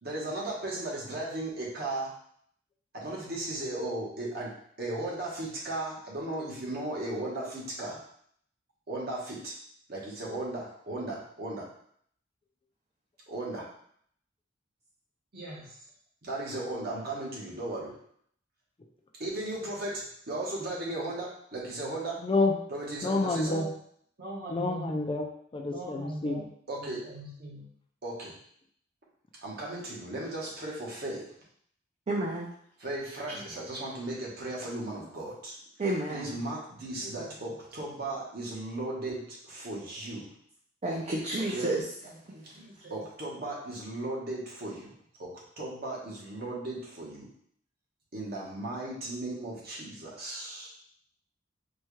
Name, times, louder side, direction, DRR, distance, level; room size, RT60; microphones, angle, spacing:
voice 1, 0.0-2.1 2.9-8.0 8.9-9.5 9.9-11.7 13.3-13.7 15.3-15.8 16.2-17.9 19.2-22.2 22.7-23.7 24.2-24.9 25.7-27.7 28.0-28.4 29.4-31.3 32.8-35.6 36.1-40.3 41.5-41.7 42.0-47.3 48.1-50.7, right 2 dB, 55° right, -4 dB, 1.1 m, -36 dB
voice 2, 22.2-22.6 23.0-23.7 24.5-26.5, left 2 dB, 25° left, 2 dB, 0.4 m, -29 dB
voice 3, 32.1-32.5 35.8-36.4 40.8-41.8, right 1 dB, 35° right, -3 dB, 0.5 m, -30 dB
4.3 x 2.3 x 3.1 m, 0.65 s
head